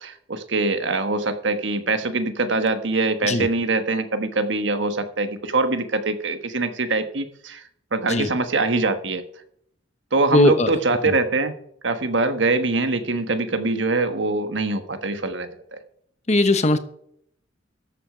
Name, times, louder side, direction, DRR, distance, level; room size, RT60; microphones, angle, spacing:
voice 1, 0.0-7.6 7.9-9.2 10.1-11.6 11.8-15.8, right 3 dB, 70° right, 9 dB, 1.4 m, -23 dB
voice 2, 10.3-10.8 11.0-11.1 16.3-16.8, left 2 dB, 35° left, 10 dB, 1.0 m, -19 dB
13.5 x 8.3 x 5.1 m, 0.69 s
head